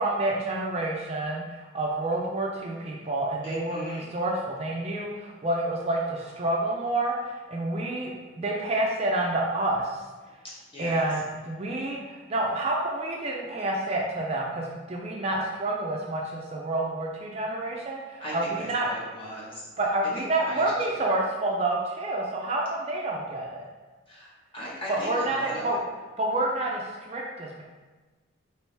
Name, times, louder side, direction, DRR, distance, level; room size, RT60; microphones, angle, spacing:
voice 1, 0.0-10.0 10.8-18.9 19.8-23.6 24.9-25.8 26.2-27.6, right 2 dB, 30° right, -1 dB, 0.4 m, -28 dB
voice 2, 3.4-4.1 10.7-11.0 18.2-19.7 20.1-21.1 24.1-24.3 24.5-25.8, equal, 25° left, -7 dB, 1.2 m, -38 dB
4.5 x 3.0 x 3.3 m, 1.3 s
head